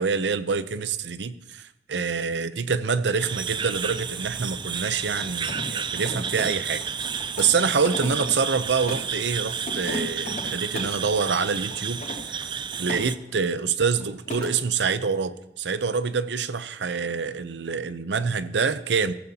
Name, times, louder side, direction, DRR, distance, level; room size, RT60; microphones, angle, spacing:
voice 1, 0.0-6.8 7.4-12.5 12.8-19.1, right 5 dB, 80° right, 13 dB, 0.7 m, -26 dB
sound 1, 3.2-13.2, right 7 dB, 25° right, 0.4 m, -31 dB
Mechanisms, 5.0-9.1 9.6-11.0 11.7-13.0 13.3-13.7 14.0-14.5, left 1 dB, 45° left, 3.3 m, -37 dB
15.0 x 14.5 x 2.8 m, 0.94 s
head